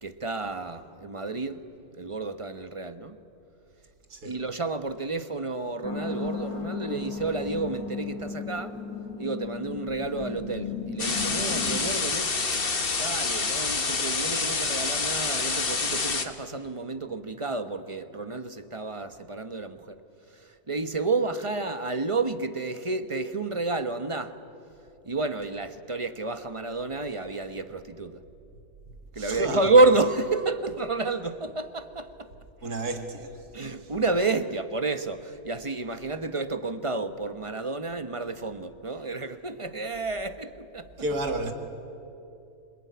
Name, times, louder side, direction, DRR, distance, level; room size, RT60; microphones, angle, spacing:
voice 1, 0.0-1.6 1.9-3.2 4.2-8.8 9.2-12.5 13.0-20.0 20.3-24.4 25.0-28.2 29.1-32.3 33.5-40.9, right 3 dB, 25° right, 1.0 m, -29 dB
voice 2, 4.1-4.4 29.1-29.7 32.6-33.4 41.0-41.5, right 1 dB, 85° right, 2.6 m, -31 dB
sound 1, 5.8-11.8, left 4 dB, 80° left, 3.1 m, -35 dB
sound 2, 11.0-16.3, left 4 dB, 40° left, 1.7 m, -27 dB
27.0 x 21.0 x 9.5 m
omnidirectional pair, 1.6 m